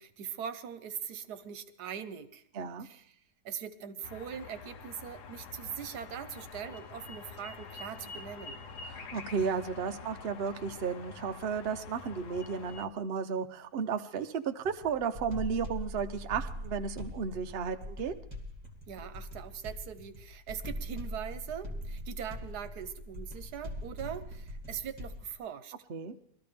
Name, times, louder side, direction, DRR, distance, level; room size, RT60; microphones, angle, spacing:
voice 1, 0.0-2.4 2.8-3.2 3.4-8.6 18.9-25.7, right 8 dB, 80° right, 12 dB, 1.3 m, -41 dB
voice 2, 2.5-2.9 8.9-18.1 25.9-26.1, right 6 dB, 50° right, 7 dB, 0.8 m, -34 dB
sound 1, 4.0-12.9, left 5 dB, 85° left, 1.3 m, -46 dB
sound 2, 14.6-25.3, equal, 25° right, 2.1 m, -42 dB
21.0 x 13.5 x 3.4 m, 0.66 s
omnidirectional pair, 1.7 m